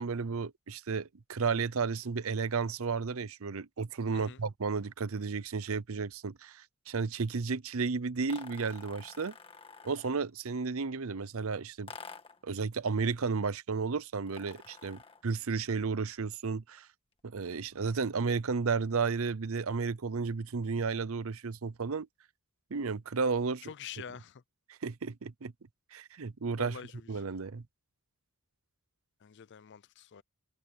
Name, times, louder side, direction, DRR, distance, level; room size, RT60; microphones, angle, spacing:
voice 1, 0.0-9.3 9.8-11.9 12.4-16.9 17.2-22.1 22.7-23.7 24.7-25.5 25.9-26.8 27.1-27.6, right 5 dB, 65° right, 0.7 m, -33 dB
sound 1, 8.3-10.3 11.9-12.5 14.3-15.3, left 4 dB, 25° left, 1.7 m, -49 dB
voice 2, 23.6-24.4 26.6-27.0 29.2-30.2, left 7 dB, 50° left, 0.5 m, -46 dB
head